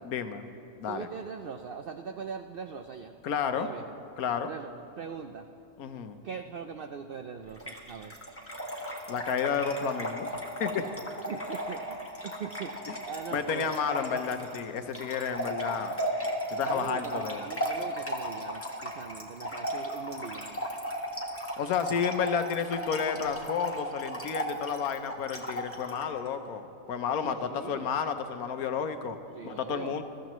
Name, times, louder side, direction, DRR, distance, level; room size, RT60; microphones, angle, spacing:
voice 1, 0.0-0.4 0.8-1.1 3.2-3.7 4.2-4.5 5.8-6.2 9.1-10.9 12.9-13.0 13.3-16.0 16.5-17.5 21.6-29.2 29.4-30.0, left 7 dB, 75° left, 8 dB, 1.2 m, -31 dB
voice 2, 0.9-3.1 3.5-3.8 4.4-4.7 5.0-5.5 6.2-8.1 11.3-13.7 16.6-20.6 27.2-27.9 29.3-30.0, right 6 dB, 75° right, 6 dB, 0.5 m, -41 dB
Trickle dribble / Fill (with liquid), 7.6-26.0, equal, 10° left, 1.3 m, -36 dB
22.0 x 14.0 x 3.1 m, 2.8 s
omnidirectional pair, 1.5 m